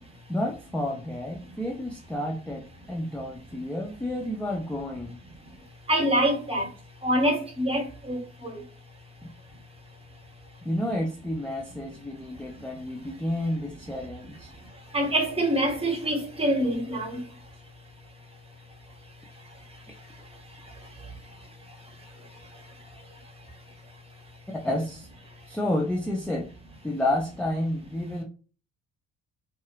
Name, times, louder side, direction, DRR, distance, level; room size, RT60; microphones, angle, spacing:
voice 1, 0.3-5.2 10.6-14.5 24.6-25.1 25.5-26.5 26.8-28.2, left 1 dB, 5° left, 0.6 m, -30 dB
voice 2, 5.9-6.7 7.0-8.5 14.9-17.2, right 1 dB, 15° right, 1.1 m, -25 dB
4.1 x 2.4 x 2.4 m
figure-of-eight pair, 50°, 37 cm